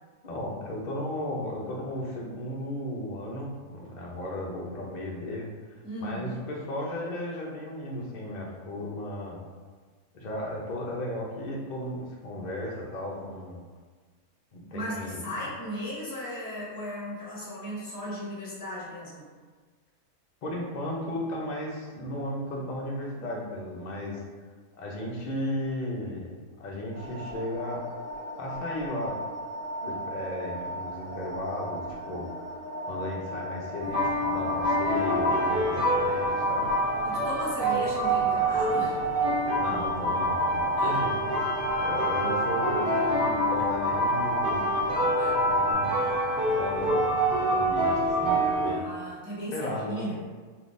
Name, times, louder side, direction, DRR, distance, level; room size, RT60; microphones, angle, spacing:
voice 1, 0.2-9.4 10.1-13.6 14.5-15.2 20.4-24.2 24.8-26.3 26.6-27.8 28.4-29.2 29.8-32.3 32.8-36.7 39.6-41.1 41.7-44.7 45.4-46.2 46.6-47.1 47.5-48.8 49.5-50.1, left 1 dB, 70° left, -2 dB, 0.4 m, -35 dB
voice 2, 5.8-6.4 14.7-19.2 37.0-39.0 40.8-41.0 41.8-41.9 43.5-43.6 45.2-45.3 48.6-50.1, left 1 dB, 20° left, -6 dB, 0.7 m, -36 dB
sound 1, 26.9-45.7, left 1 dB, 85° right, 1.2 m, -36 dB
sound 2, 33.8-48.7, right 1 dB, 15° right, 1.2 m, -26 dB
3.5 x 2.7 x 2.5 m, 1.5 s
omnidirectional pair, 1.6 m